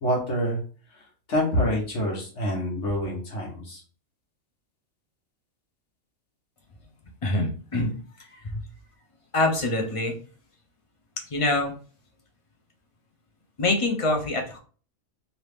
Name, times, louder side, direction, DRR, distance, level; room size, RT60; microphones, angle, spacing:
voice 1, 0.0-0.6 0.9-1.0 1.3-3.8, equal, 70° left, -2 dB, 1.4 m, -26 dB
voice 2, 7.2-7.9 9.3-10.1 11.3-11.7 13.6-14.6, left 2 dB, 35° left, 2 dB, 0.6 m, -24 dB
3.0 x 2.8 x 3.3 m, 0.39 s
omnidirectional pair, 1.3 m